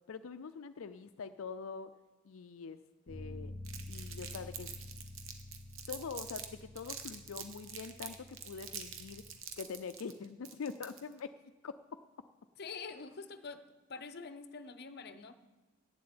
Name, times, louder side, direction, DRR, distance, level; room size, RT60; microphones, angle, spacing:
voice 1, 0.1-1.9 2.2-2.8 3.1-3.5 3.9-4.7 5.9-9.2 9.6-11.3 11.6-11.7, left 5 dB, 80° left, 9 dB, 0.5 m, -44 dB
Bass guitar, 3.1-9.3, left 1 dB, 20° right, 1.8 m, -49 dB
Crumpling crinkling, 3.6-6.5 6.8-11.2, right 8 dB, 75° right, 1.1 m, -46 dB
voice 2, 12.6-13.6 13.9-15.3, left 4 dB, 50° left, 10 dB, 0.7 m, -45 dB
8.9 x 7.5 x 8.7 m, 1.2 s
head